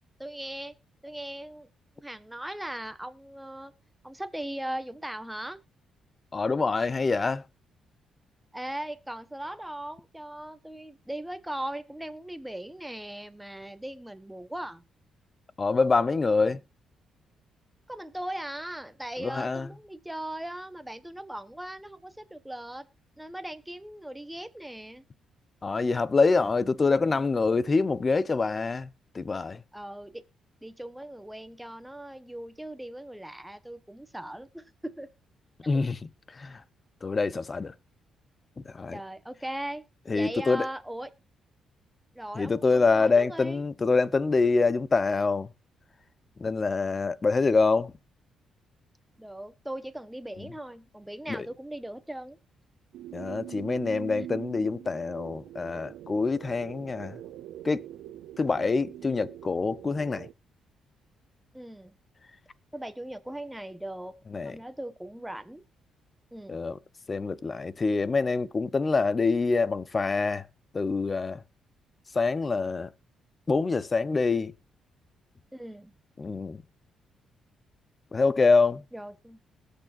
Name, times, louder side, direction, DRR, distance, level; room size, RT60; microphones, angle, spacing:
voice 1, 0.2-0.7 1.0-1.7 2.0-3.7 4.0-5.6 8.5-14.8 17.9-22.9 23.2-25.0 29.7-30.2 30.6-35.1 35.7-35.8 38.9-39.9 40.1-41.1 42.1-43.6 49.2-52.4 61.5-61.9 62.7-65.6 66.3-66.6 75.5-75.9 78.9-79.4, right 1 dB, 5° right, 1.3 m, -39 dB
voice 2, 6.3-7.4 15.6-16.6 19.2-19.7 25.6-28.9 29.1-29.6 35.7-36.6 37.0-37.7 38.7-39.0 40.1-40.7 42.3-45.5 46.4-47.9 51.3-51.5 53.1-57.2 57.6-57.8 58.4-60.3 64.3-64.5 66.5-66.8 67.1-70.5 70.7-71.4 72.1-72.9 73.5-74.5 76.2-76.6 78.1-78.8, left 4 dB, 30° left, 0.8 m, -25 dB
sound 1, 52.9-60.3, right 12 dB, 90° right, 0.5 m, -43 dB
19.5 x 6.6 x 2.5 m
cardioid pair, 90°, 0 cm